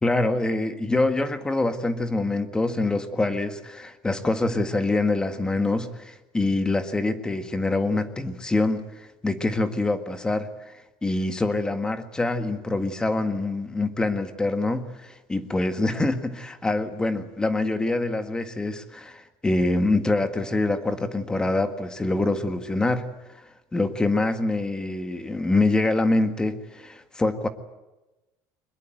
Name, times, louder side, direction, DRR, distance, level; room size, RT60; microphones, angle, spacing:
voice 1, 0.0-10.5 11.0-23.1 23.7-27.5, left 2 dB, 10° left, 9 dB, 1.7 m, -25 dB
23.0 x 21.5 x 9.1 m, 1.0 s
cardioid pair, 150°, 7 cm